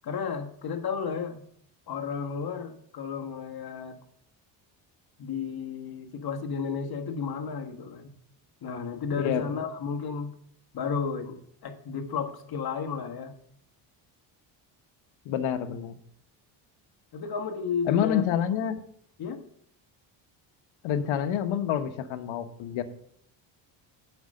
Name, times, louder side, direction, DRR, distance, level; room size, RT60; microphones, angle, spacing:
voice 1, 0.0-1.4 1.9-4.0 5.2-8.1 8.6-10.3 10.7-13.3 17.1-18.2 19.2-19.4, left 6 dB, 50° left, 5 dB, 1.4 m, -33 dB
voice 2, 9.2-9.5 15.2-16.0 17.9-18.8 20.8-22.8, left 9 dB, 70° left, 9 dB, 1.1 m, -27 dB
7.9 x 5.4 x 6.5 m, 0.67 s
cardioid pair, 95°, 49 cm